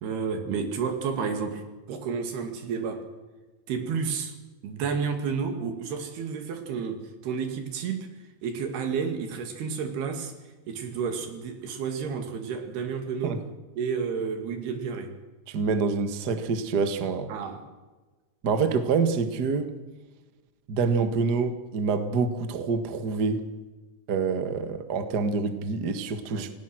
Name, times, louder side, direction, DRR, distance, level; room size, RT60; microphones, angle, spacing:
voice 1, 0.0-1.6 1.9-3.1 3.7-4.4 4.6-8.1 8.4-10.3 10.7-13.4 13.8-15.1 17.3-17.7 26.3-26.5, right 6 dB, 70° right, 6 dB, 4.3 m, -31 dB
voice 2, 15.5-17.3 18.4-19.7 20.7-23.4 24.1-26.5, right 4 dB, 90° right, 9 dB, 0.8 m, -26 dB
28.0 x 18.5 x 6.2 m, 1.2 s
omnidirectional pair, 4.7 m